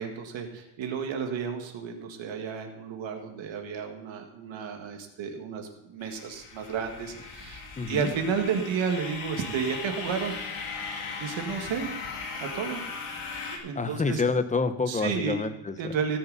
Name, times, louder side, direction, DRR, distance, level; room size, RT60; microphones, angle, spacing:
voice 1, 0.0-10.4 11.2-11.9 12.4-13.1 13.5-14.2 14.9-15.4 15.8-16.2, right 6 dB, 65° right, 4 dB, 1.8 m, -32 dB
sound 1, 6.0-13.6, left 4 dB, 85° left, 2.5 m, -38 dB
voice 2, 7.8-8.1 13.8-16.0, left 4 dB, 15° left, 10 dB, 0.6 m, -28 dB
17.0 x 7.0 x 4.0 m, 0.91 s
cardioid pair, 155°, 49 cm